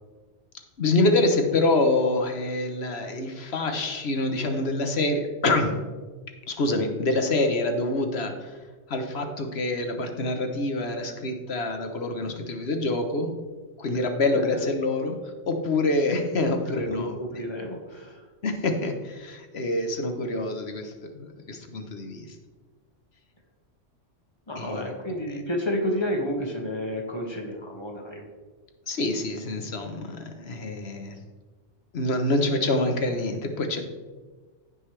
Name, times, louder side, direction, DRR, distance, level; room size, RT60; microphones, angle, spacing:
voice 1, 0.8-5.8 6.5-8.6 8.9-13.3 13.8-15.2 15.5-17.2 18.4-22.4 24.6-24.9 28.9-31.2 31.9-33.8, left 2 dB, 60° left, 5 dB, 1.2 m, -26 dB
voice 2, 14.3-14.7 16.7-18.2 24.5-28.2, equal, 20° left, 1 dB, 1.6 m, -31 dB
15.5 x 5.4 x 3.3 m, 1.3 s
omnidirectional pair, 1.3 m